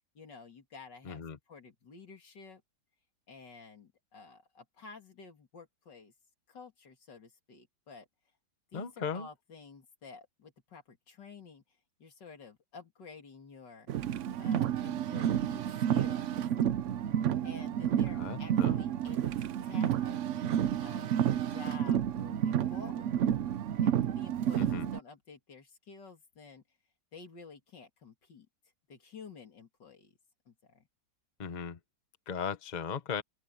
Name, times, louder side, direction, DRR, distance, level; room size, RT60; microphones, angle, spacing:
voice 1, 0.1-2.6 3.3-6.1 6.5-8.1 8.7-11.6 12.0-13.9 14.4-16.4 17.4-20.3 20.8-23.2 23.8-26.6 27.1-28.5 28.9-30.1 30.5-30.9, left 5 dB, 80° left, 3.2 m, -51 dB
voice 2, 1.0-1.4 8.7-9.3 18.2-18.8 24.6-24.9 31.4-31.8 32.3-33.2, left 6 dB, 30° left, 1.0 m, -37 dB
Car, 13.9-25.0, right 10 dB, 65° right, 0.8 m, -30 dB
open air
omnidirectional pair, 1.9 m